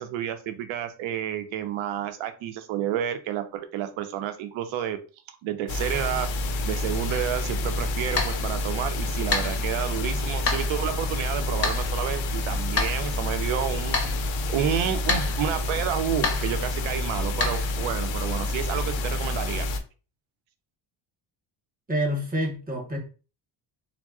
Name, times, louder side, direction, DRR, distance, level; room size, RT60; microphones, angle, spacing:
voice 1, 0.0-5.0 5.4-6.3 6.6-19.7, right 10 dB, 85° right, 8 dB, 0.6 m, -30 dB
sound 1, 5.7-19.8, left 2 dB, 75° left, 0.5 m, -28 dB
sound 2, 7.1-17.8, left 4 dB, 30° left, 0.5 m, -33 dB
voice 2, 21.9-23.0, equal, 20° right, 1 dB, 0.8 m, -27 dB
3.7 x 2.0 x 2.3 m, 0.35 s
cardioid pair, 140°, 47 cm